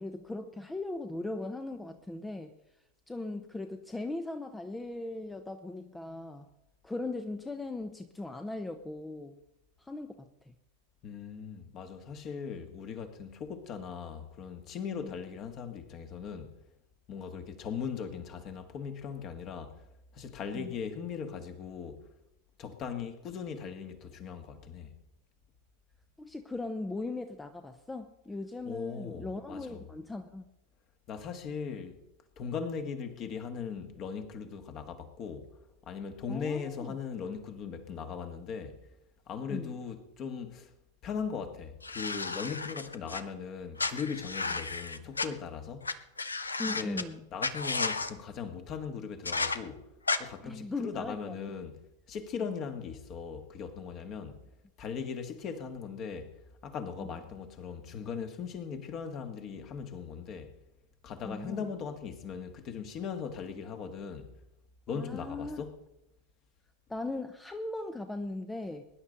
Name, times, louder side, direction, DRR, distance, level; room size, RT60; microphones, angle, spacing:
voice 1, 0.0-2.5 3.1-6.5 6.8-9.4 9.8-10.5 15.0-15.1 20.5-20.7 26.2-30.4 36.3-37.0 39.5-39.7 46.6-47.2 50.4-51.4 57.0-57.2 61.2-61.6 64.9-65.6 66.9-68.9, left 2 dB, 10° left, 0.8 m, -39 dB
voice 2, 11.0-16.6 17.1-19.8 20.1-22.0 22.6-24.9 28.7-29.8 31.1-31.9 32.4-35.5 35.9-38.8 39.3-40.7 41.0-46.0 46.7-47.0 47.3-49.9 50.2-51.7 52.1-54.4 54.8-56.3 56.6-60.5 61.0-64.3 64.9-65.7, left 6 dB, 35° left, 1.7 m, -39 dB
sound 1, 41.8-43.2 43.8-45.3 45.8-45.9 46.2-47.0 47.4-48.1 49.3-49.6 50.1-50.2, left 3 dB, 75° left, 0.8 m, -33 dB
22.5 x 11.0 x 4.0 m
figure-of-eight pair, 90°, 0 cm